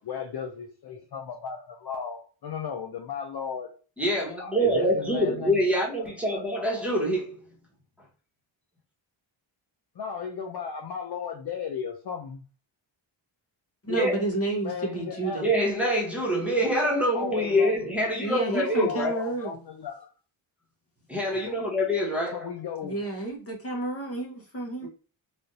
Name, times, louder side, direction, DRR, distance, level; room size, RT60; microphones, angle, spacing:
voice 1, 0.1-3.7 4.4-5.6 5.9-6.0 6.3-6.4 10.0-12.4 14.6-15.5 17.1-17.8 18.5-20.1 21.3-21.6 22.3-23.1, left 7 dB, 50° left, 0.5 m, -35 dB
voice 2, 4.0-7.4 13.9-14.2 15.4-19.2 21.1-22.5 24.8-24.9, equal, 5° right, 1.2 m, -25 dB
voice 3, 13.8-15.5 18.2-19.6 22.8-24.9, right 2 dB, 30° left, 1.0 m, -30 dB
3.4 x 2.5 x 2.6 m
wide cardioid pair, 120°, 50 cm